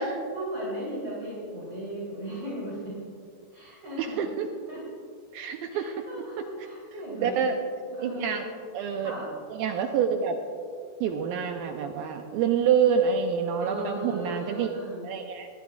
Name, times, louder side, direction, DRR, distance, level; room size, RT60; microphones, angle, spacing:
voice 1, 0.3-2.9 3.5-4.3 4.7-4.8 5.7-7.4 7.9-8.4 9.0-9.3 13.6-15.1, equal, 25° right, -8 dB, 3.5 m, -37 dB
voice 2, 4.0-4.5 5.3-6.1 7.1-7.6 8.0-8.5 8.7-9.1 9.6-10.4 11.0-14.7 15.0-15.5, right 7 dB, 85° right, 4 dB, 2.1 m, -27 dB
21.0 x 13.5 x 2.4 m, 2.2 s
omnidirectional pair, 4.8 m